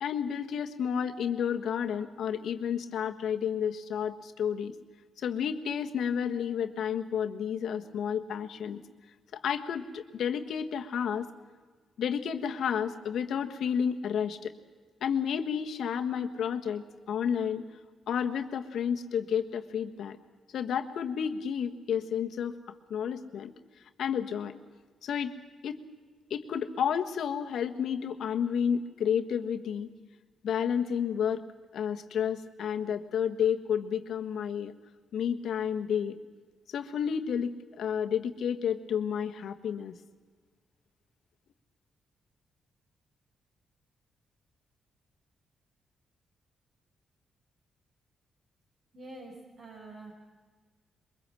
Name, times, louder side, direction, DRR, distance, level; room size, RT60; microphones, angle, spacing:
voice 1, 0.0-4.7 5.2-8.8 9.3-11.3 12.0-14.5 15.0-17.6 18.1-20.2 20.5-22.6 22.9-23.5 24.0-24.6 25.0-25.3 25.6-25.8 26.3-29.9 30.4-31.4 31.7-34.7 35.1-36.2 36.7-39.9, left 8 dB, 75° left, 6 dB, 1.5 m, -31 dB
voice 2, 48.9-50.1, right 2 dB, 60° right, -3 dB, 5.9 m, -46 dB
23.0 x 22.0 x 7.6 m, 1.4 s
cardioid pair, 85°, 0 cm